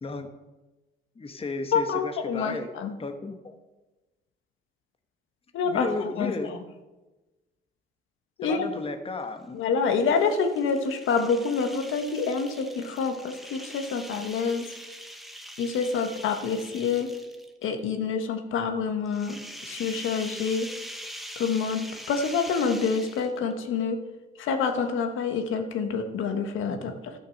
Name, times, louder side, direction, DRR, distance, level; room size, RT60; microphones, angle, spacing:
voice 1, 1.2-2.7 3.0-3.5 5.6-6.6 8.4-9.6, left 3 dB, 30° left, 6 dB, 1.2 m, -34 dB
voice 2, 1.7-2.9 5.5-5.9 6.2-6.3 8.4-8.6 9.5-14.7 15.6-17.1 17.6-19.4 19.7-20.7 21.4-24.0 24.4-27.1, left 5 dB, 80° left, 5 dB, 1.4 m, -27 dB
sound 1, 9.9-17.6 19.1-23.5, equal, ahead, 1.3 m, -43 dB
12.5 x 6.2 x 6.5 m, 1.1 s
cardioid pair, 90°, 20 cm